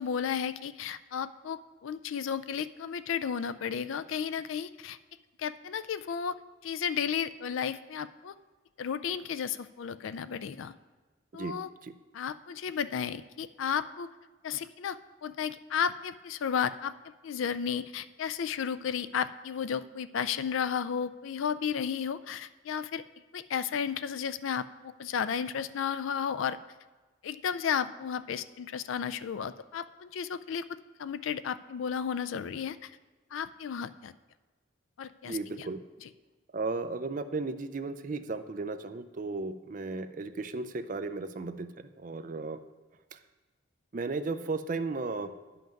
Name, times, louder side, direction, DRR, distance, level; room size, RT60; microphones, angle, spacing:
voice 1, 0.0-5.0 5.4-6.4 6.6-8.3 8.8-10.7 11.3-11.7 12.1-14.1 14.4-16.9 17.2-23.0 23.3-26.6 27.2-30.6 31.0-32.9 33.3-34.1 35.0-35.7, left 7 dB, 75° left, 13 dB, 0.4 m, -33 dB
voice 2, 11.3-11.9 35.2-35.8 36.5-42.6 43.1-43.2 43.9-45.3, right 3 dB, 40° right, 10 dB, 0.4 m, -35 dB
10.5 x 5.8 x 5.2 m, 1.3 s
head